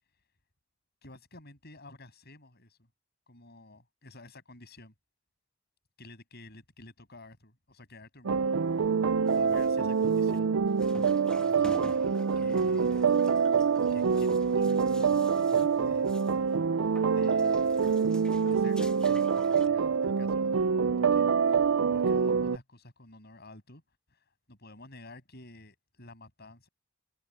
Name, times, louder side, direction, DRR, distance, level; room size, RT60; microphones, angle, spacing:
voice 1, 1.0-2.8 3.3-4.9 6.0-9.0 9.3-10.6 11.4-13.1 13.9-16.1 17.1-18.1 18.4-23.8 24.1-26.7, left 2 dB, 50° left, 7.6 m, -51 dB
sound 1, 8.2-22.6, right 6 dB, 70° right, 0.5 m, -26 dB
sound 2, 9.3-16.6 16.8-19.7, equal, 5° left, 2.0 m, -50 dB
head